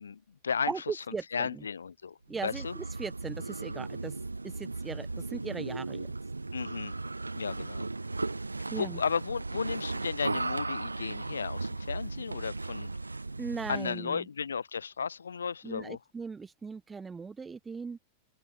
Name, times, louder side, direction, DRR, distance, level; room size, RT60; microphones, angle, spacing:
voice 1, 0.0-0.7 1.3-2.2 2.4-2.8 6.5-6.9 7.3-7.9 8.7-12.9 13.7-16.0, left 6 dB, 70° left, 0.5 m, -34 dB
voice 2, 0.7-1.7 2.3-4.1 4.4-6.1 8.7-9.0 13.4-14.3 15.6-18.0, right 5 dB, 15° right, 0.4 m, -38 dB
sound 1, 2.3-14.0, right 3 dB, 80° right, 0.3 m, -36 dB
open air
figure-of-eight pair, 90°, 0 cm